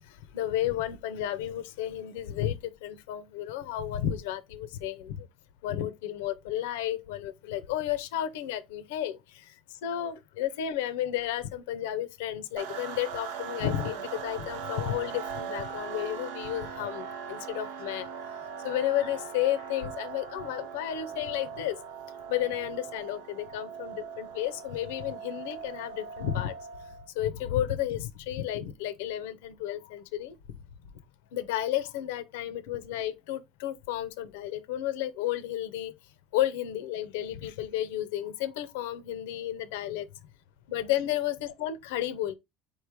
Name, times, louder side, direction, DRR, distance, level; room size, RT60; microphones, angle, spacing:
voice 1, 0.3-5.3 5.6-9.2 9.8-18.1 18.6-21.7 22.3-26.5 27.2-30.3 31.3-35.9 36.3-40.1 40.7-42.3, left 12 dB, 85° left, 0.5 m, -32 dB
sound 1, 12.6-27.1, right 7 dB, 85° right, 0.6 m, -40 dB
4.2 x 3.2 x 3.4 m
supercardioid pair, 95°, 0 cm